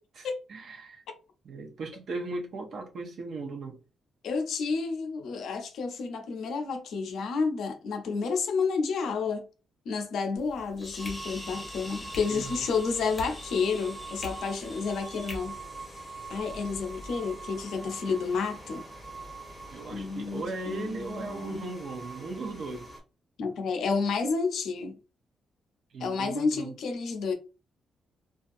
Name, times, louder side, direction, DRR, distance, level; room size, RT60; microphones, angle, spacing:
voice 1, 0.2-1.0 1.4-3.8 12.3-12.6 19.7-22.9 25.9-26.7, right 3 dB, 65° right, 0.7 m, -37 dB
voice 2, 4.2-9.5 9.9-15.6 16.3-18.8 19.9-21.7 23.4-24.9 26.0-27.3, left 5 dB, 80° left, 0.5 m, -30 dB
sound 1, 10.4-15.4, left 1 dB, 15° left, 0.8 m, -43 dB
sound 2, 11.0-23.0, right 2 dB, 5° right, 1.3 m, -44 dB
2.4 x 2.3 x 2.5 m
cardioid pair, 130°, 0 cm